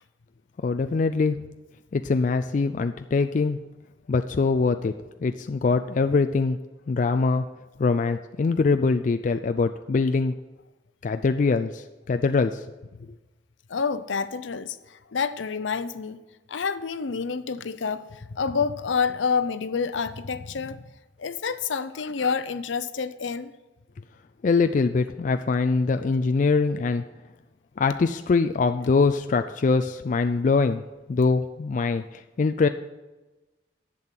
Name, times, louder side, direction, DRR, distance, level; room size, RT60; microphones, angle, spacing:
voice 1, 0.6-1.4 1.9-3.6 4.1-4.9 5.2-6.6 6.9-7.4 7.8-10.3 11.0-12.6 24.4-27.0 27.8-30.8 31.1-32.7, left 4 dB, 40° left, 8 dB, 0.3 m, -23 dB
voice 2, 13.7-14.8 15.1-16.2 16.5-18.0 18.3-20.8 21.2-23.5, left 5 dB, 85° left, 13 dB, 0.6 m, -28 dB
11.0 x 7.7 x 5.8 m, 1.1 s
head